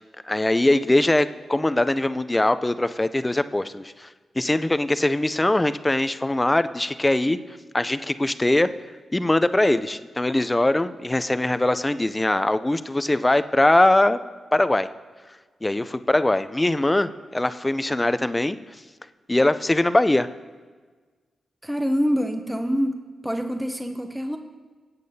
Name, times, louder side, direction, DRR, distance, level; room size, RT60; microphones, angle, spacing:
voice 1, 0.3-4.1 4.4-7.4 7.7-8.7 9.1-14.2 14.5-14.9 15.6-18.6 19.3-20.3, left 1 dB, 20° left, 12 dB, 0.4 m, -21 dB
voice 2, 21.6-24.4, equal, 5° right, 5 dB, 0.8 m, -26 dB
16.5 x 8.4 x 2.7 m, 1.4 s
supercardioid pair, 50°, 0 cm